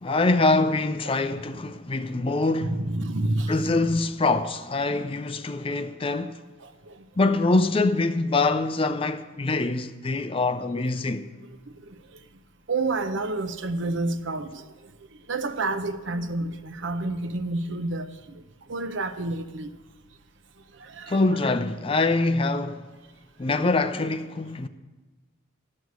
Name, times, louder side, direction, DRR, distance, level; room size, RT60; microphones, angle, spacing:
voice 1, 0.0-2.8 3.5-6.4 7.2-11.3 21.1-22.9 23.4-24.7, left 3 dB, 25° left, 0.5 m, -24 dB
voice 2, 2.6-3.9 6.6-7.0 11.8-12.0 12.7-14.7 15.3-18.4 18.7-19.7 20.7-21.2, right 2 dB, 65° right, 0.7 m, -29 dB
13.0 x 6.5 x 9.3 m
head